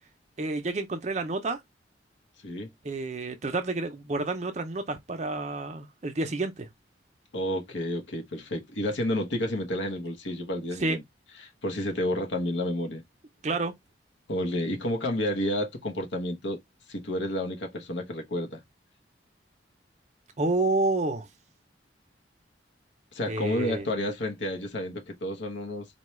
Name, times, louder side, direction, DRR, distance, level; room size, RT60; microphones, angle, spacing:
voice 1, 0.4-1.6 2.8-6.7 10.8-11.0 13.4-13.7 20.4-21.3 23.3-23.9, right 2 dB, 35° right, 0.5 m, -29 dB
voice 2, 7.3-11.0 11.4-13.0 14.3-16.6 16.9-18.6 23.1-25.9, left 1 dB, 75° left, 0.8 m, -30 dB
4.2 x 2.3 x 3.0 m
head